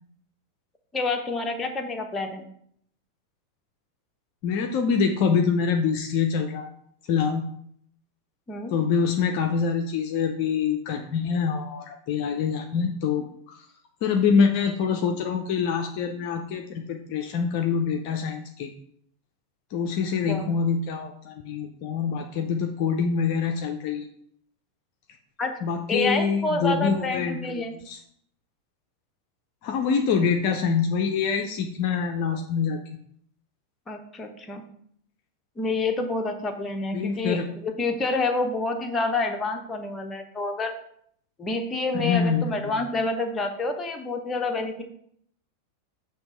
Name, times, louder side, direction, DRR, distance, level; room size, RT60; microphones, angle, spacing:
voice 1, 0.9-2.5 8.5-8.7 20.3-20.5 25.4-25.5 25.9-27.7 33.9-34.7 35.6-40.7 41.4-44.8, left 3 dB, 15° left, 4 dB, 0.9 m, -28 dB
voice 2, 4.4-6.7 7.1-7.4 8.7-13.6 14.0-18.7 19.7-24.1 25.6-27.4 27.9-28.0 29.6-32.8 36.9-37.5 41.9-42.8, left 6 dB, 45° left, 4 dB, 0.6 m, -25 dB
6.9 x 3.0 x 5.7 m, 0.67 s
figure-of-eight pair, 90°, 0 cm